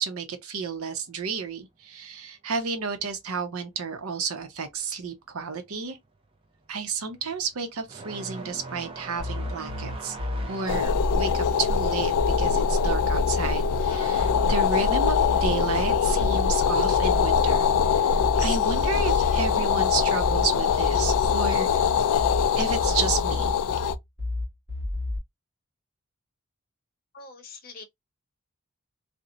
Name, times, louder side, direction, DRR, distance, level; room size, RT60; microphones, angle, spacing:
voice 1, 0.0-6.0 6.7-10.2 10.5-12.1 12.4-21.9 22.6-23.5, right 5 dB, 75° right, 0.7 m, -31 dB
sound 1, 5.3-5.6 5.9-14.3 14.5-15.6 16.6-16.7 17.5-17.6 19.3-19.5, right 3 dB, 25° right, 0.5 m, -42 dB
sound 2, 9.2-25.2, left 2 dB, 50° right, 1.2 m, -31 dB
sound 3, 10.7-24.0, left 7 dB, 85° left, 0.3 m, -23 dB
voice 2, 27.1-27.8, left 4 dB, 45° left, 0.7 m, -44 dB
2.6 x 2.1 x 2.6 m
head